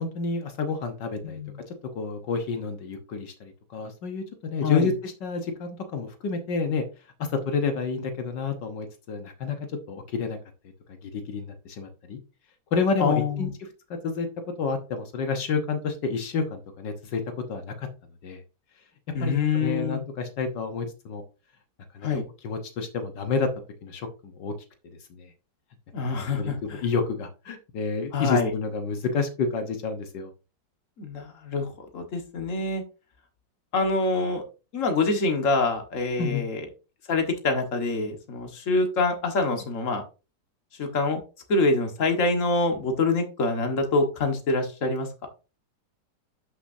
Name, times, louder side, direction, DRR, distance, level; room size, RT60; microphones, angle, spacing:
voice 1, 0.0-1.4 1.7-6.9 7.2-9.6 9.9-10.4 11.0-12.2 12.7-13.7 14.0-14.3 14.6-17.9 18.2-18.4 19.2-21.2 21.9-22.1 22.4-23.5 23.8-24.5 25.1-25.3 26.0-30.3 36.2-36.5, left 4 dB, 80° left, 6 dB, 1.8 m, -29 dB
voice 2, 1.2-1.6 4.6-4.9 13.0-13.5 19.1-20.0 22.0-22.2 25.9-26.8 28.1-28.5 31.0-32.8 33.7-34.4 34.7-36.7 37.1-40.0 40.8-41.2 41.5-45.1, left 3 dB, 45° left, 4 dB, 1.9 m, -25 dB
12.0 x 6.2 x 2.7 m, 0.32 s
omnidirectional pair, 1.9 m